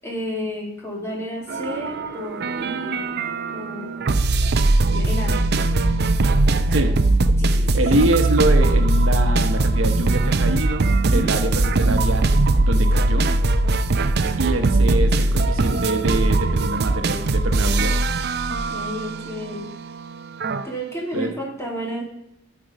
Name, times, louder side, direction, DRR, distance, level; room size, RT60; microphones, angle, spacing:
voice 1, 0.0-3.0 3.5-4.2 4.9-5.4 7.4-7.8 11.0-11.3 18.5-19.7 20.6-22.0, equal, 15° left, -2 dB, 2.4 m, -31 dB
sound 1, 1.5-20.6, right 2 dB, 55° right, 0.6 m, -20 dB
voice 2, 7.7-12.2 12.6-13.3 14.4-17.9 21.1-21.4, right 2 dB, 80° right, 7 dB, 1.0 m, -25 dB
13.0 x 4.7 x 4.9 m, 0.79 s
head